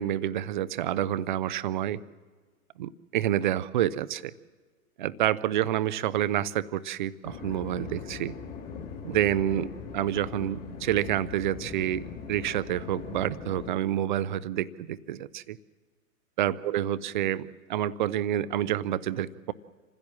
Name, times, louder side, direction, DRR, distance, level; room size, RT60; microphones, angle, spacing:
voice 1, 0.0-2.0 2.8-4.3 5.0-8.4 9.0-15.6 16.4-19.5, right 12 dB, 35° right, 17 dB, 0.6 m, -28 dB
sound 1, 7.2-13.7, left 6 dB, 20° left, 1.9 m, -40 dB
27.0 x 16.0 x 7.4 m, 1.4 s
figure-of-eight pair, 115°, 44 cm